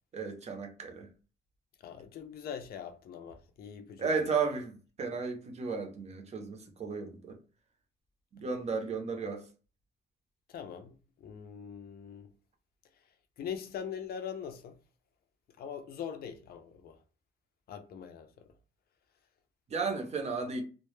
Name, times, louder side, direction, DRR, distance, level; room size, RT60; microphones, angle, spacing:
voice 1, 0.1-1.1 4.0-7.4 8.3-9.4 19.7-20.6, right 5 dB, 35° right, 0.6 m, -34 dB
voice 2, 1.8-4.4 10.5-12.3 13.4-14.8 15.6-17.0 17.7-18.5, left 8 dB, 55° left, 0.4 m, -42 dB
2.1 x 2.0 x 3.1 m
cardioid pair, 160°, 19 cm